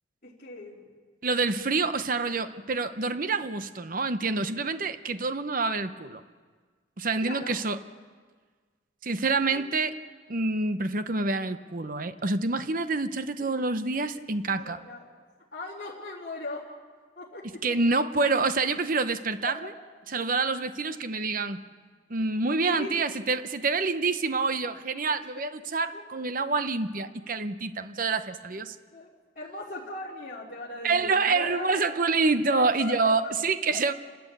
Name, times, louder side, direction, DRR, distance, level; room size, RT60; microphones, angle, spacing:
voice 1, 0.2-0.9 7.2-7.5 9.5-9.7 13.4-13.7 14.5-15.1 15.5-16.7 17.2-17.7 19.4-19.6 22.7-23.0 25.9-26.0 28.5-28.6 28.9-31.8 32.5-33.3, left 2 dB, 45° left, -9 dB, 3.7 m, -39 dB
voice 2, 1.2-6.2 7.0-7.8 9.0-9.9 10.3-14.8 17.6-19.5 20.1-21.6 22.1-28.8 30.8-33.9, right 3 dB, 45° right, 11 dB, 0.8 m, -27 dB
29.0 x 13.5 x 8.5 m, 1.5 s
head